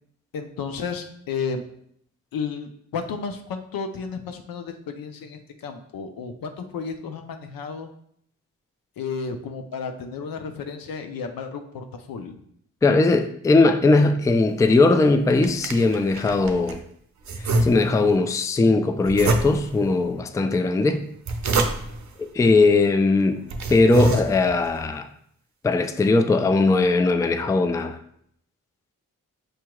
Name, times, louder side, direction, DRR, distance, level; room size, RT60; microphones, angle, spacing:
voice 1, 0.3-1.6 2.3-7.9 9.0-12.4, left 5 dB, 75° left, 0.6 m, -32 dB
voice 2, 12.8-16.8 17.4-21.0 22.3-23.4 23.7-25.1 25.6-28.0, left 3 dB, 10° left, 0.3 m, -19 dB
sound 1, 15.0-16.8 17.2-18.2 19.0-19.9 21.0-22.1 22.8-22.9 23.4-24.7, right 2 dB, 50° right, 0.6 m, -26 dB
6.3 x 2.8 x 2.3 m
supercardioid pair, 40°, 36 cm